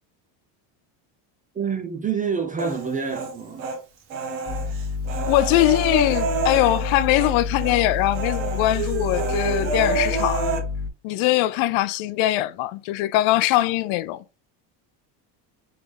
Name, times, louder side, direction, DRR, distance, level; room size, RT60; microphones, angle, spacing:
voice 1, 1.5-3.7, right 6 dB, 20° right, 0.3 m, -27 dB
Human voice, 2.6-3.8 4.1-7.3 7.6-7.8 8.1-10.6, right 4 dB, 90° right, 1.2 m, -28 dB
sound 1, 4.5-10.9, left 4 dB, 25° left, 1.2 m, -29 dB
voice 2, 5.3-10.5 11.0-14.2, left 16 dB, 70° left, 0.5 m, -21 dB
3.8 x 3.6 x 3.2 m
cardioid pair, 115°, 50 cm